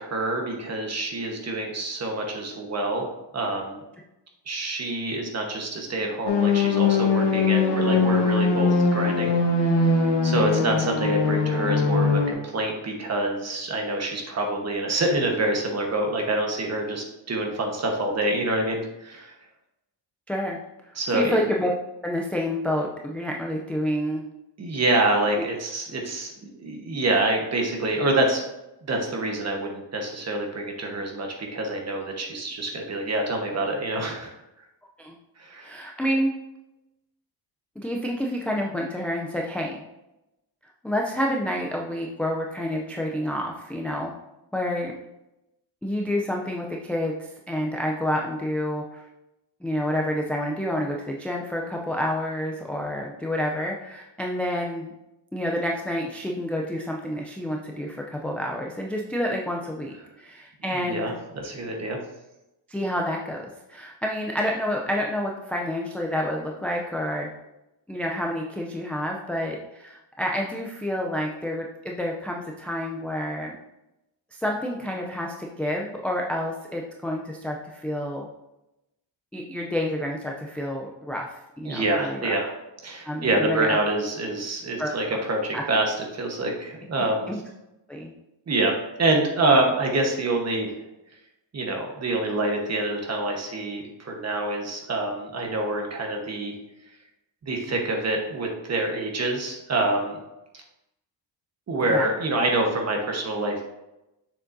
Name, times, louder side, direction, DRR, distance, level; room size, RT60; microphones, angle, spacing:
voice 1, 0.0-3.1 3.3-3.8 4.5-19.3 20.9-21.4 24.6-28.4 28.8-34.3 35.4-35.7 60.7-62.0 81.7-82.5 82.8-87.3 88.5-88.7 89.0-90.8 91.5-96.5 97.4-100.2 100.5-100.6 101.7-103.6, right 2 dB, 35° right, 2 dB, 1.2 m, -26 dB
sound 1, 6.3-12.3, left 4 dB, 65° left, 1.2 m, -21 dB
voice 2, 20.3-20.6 21.1-21.7 22.0-24.2 25.4-25.5 35.0-35.2 35.6-36.3 37.8-39.8 40.8-44.1 44.5-45.0 45.8-49.0 49.6-54.9 55.3-61.2 62.7-67.3 67.9-73.6 74.3-78.3 79.3-82.3 83.1-83.8 84.8-84.9 85.5-85.7 87.3-87.4 87.9-88.1 101.9-102.1, equal, 5° left, -1 dB, 0.3 m, -29 dB
7.0 x 6.2 x 2.6 m, 0.92 s
wide cardioid pair, 170°, 45 cm